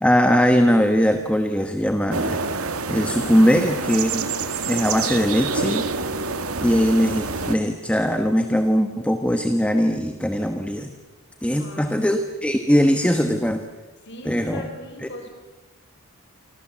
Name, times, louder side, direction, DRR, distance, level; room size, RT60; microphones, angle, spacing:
voice 1, 0.0-2.5 2.9-4.3 4.7-5.9 6.6-10.9 11.4-13.7 14.2-14.7 15.0-15.1, equal, 5° left, 6 dB, 1.2 m, -20 dB
sound 1, 2.1-7.6, right 4 dB, 70° right, 1.8 m, -27 dB
voice 2, 11.6-12.1 14.0-15.3, left 1 dB, 50° left, 4 dB, 4.9 m, -39 dB
28.5 x 25.5 x 7.5 m, 1.2 s
head